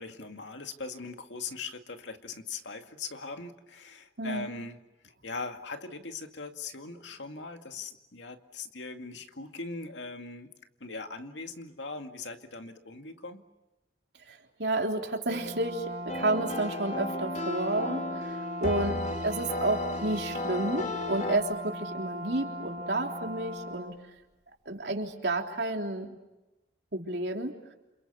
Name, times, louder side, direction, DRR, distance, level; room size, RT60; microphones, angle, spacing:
voice 1, 0.0-4.8 5.0-10.5 10.8-13.4, left 3 dB, 90° left, 5 dB, 2.2 m, -40 dB
voice 2, 14.3-19.0 19.2-24.0 24.7-26.2 26.9-27.6, right 2 dB, 70° right, 2 dB, 3.5 m, -31 dB
Brass instrument, 15.3-24.0, equal, 40° right, 2.5 m, -38 dB
sound 1, 16.1-21.4, left 2 dB, 40° left, 2.5 m, -35 dB
29.5 x 28.0 x 7.0 m, 1.0 s
head